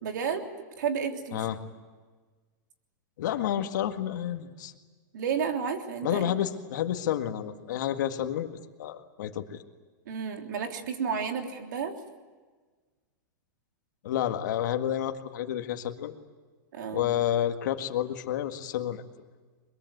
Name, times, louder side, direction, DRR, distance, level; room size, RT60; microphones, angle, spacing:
voice 1, 0.0-0.4 0.8-1.4 5.1-6.4 10.0-12.0 16.7-17.1, right 6 dB, 75° right, 4 dB, 3.4 m, -31 dB
voice 2, 3.2-4.7 6.0-8.5 8.8-9.6 14.0-16.2 16.9-19.0, left 11 dB, 70° left, 6 dB, 1.9 m, -30 dB
22.5 x 22.0 x 9.4 m, 1.4 s
hypercardioid pair, 125°, 10 cm